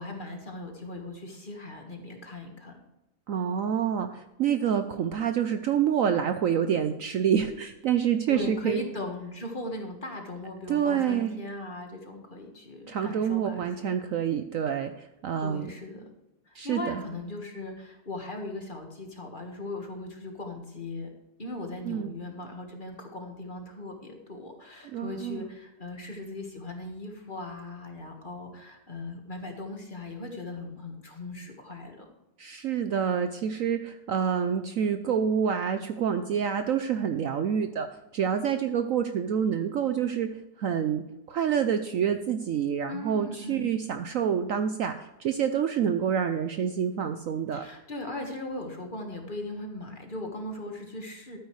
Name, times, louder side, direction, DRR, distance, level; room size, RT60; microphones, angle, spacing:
voice 1, 0.0-2.8 8.3-13.8 15.4-16.1 16.5-21.1 21.4-32.1 42.9-43.7 47.5-51.4, left 2 dB, 30° left, 3 dB, 1.6 m, -38 dB
voice 2, 3.3-8.8 10.7-11.3 12.9-15.7 16.5-17.0 21.9-22.1 24.9-25.4 32.4-37.9 38.1-40.3 40.6-47.6, right 8 dB, 65° right, 8 dB, 0.9 m, -27 dB
13.0 x 9.3 x 3.2 m, 0.94 s
omnidirectional pair, 1.8 m